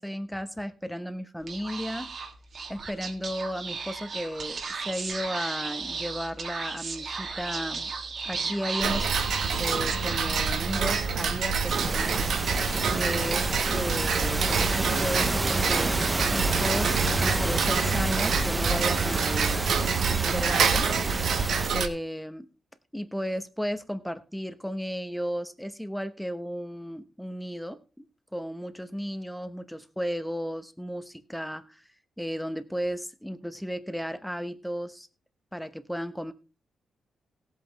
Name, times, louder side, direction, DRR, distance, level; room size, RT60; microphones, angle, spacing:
voice 1, 0.0-2.1 2.7-7.9 8.2-9.1 9.6-12.3 12.9-19.7 20.1-20.9 21.7-22.5 22.9-35.1 35.5-36.3, equal, ahead, 10 dB, 1.0 m, -34 dB
Speech / Whispering, 1.4-11.2, right 4 dB, 50° right, 1.8 m, -35 dB
Tick-tock, 8.8-21.9, right 5 dB, 70° right, 1.5 m, -27 dB
sound 1, 11.7-21.7, right 2 dB, 20° right, 0.8 m, -29 dB
17.5 x 8.2 x 3.4 m, 0.33 s
cardioid pair, 115°, 0 cm